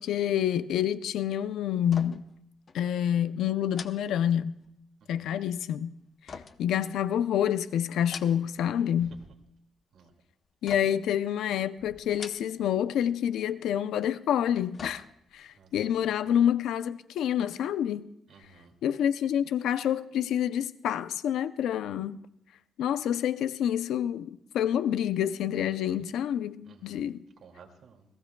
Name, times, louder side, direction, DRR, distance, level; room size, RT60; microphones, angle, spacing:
voice 1, 0.0-2.2 2.7-4.5 5.1-5.9 6.3-9.1 10.6-15.0 15.3-18.0 18.8-22.2 22.8-27.2, left 10 dB, 90° left, 0.5 m, -28 dB
sound 1, 1.8-2.4 2.7-2.8 3.7-4.8 6.3-7.4 7.9-8.7 9.0-9.6 10.7-11.2 12.0-12.8 13.1-13.2 14.3-15.5 15.9-16.0, left 5 dB, 40° left, 0.7 m, -45 dB
voice 2, 18.3-18.7 26.7-27.0 27.4-28.1, right 5 dB, 65° right, 2.3 m, -54 dB
28.0 x 18.5 x 2.3 m
cardioid pair, 140°, 0 cm